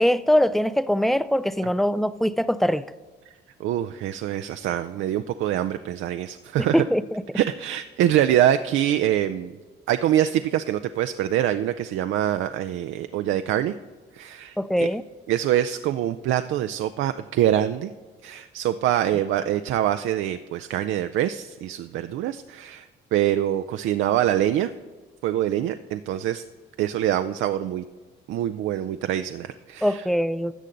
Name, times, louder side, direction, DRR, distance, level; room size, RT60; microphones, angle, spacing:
voice 1, 0.0-2.9 6.7-7.0 14.6-15.0 29.8-30.5, equal, ahead, 0.3 m, -22 dB
voice 2, 3.6-6.9 7.3-9.5 9.9-13.7 14.1-14.9 15.3-17.9 18.2-24.7 25.2-26.4 26.8-27.8 28.3-30.1, right 11 dB, 80° right, 0.4 m, -24 dB
13.5 x 7.4 x 3.9 m
cardioid pair, 90°, 20 cm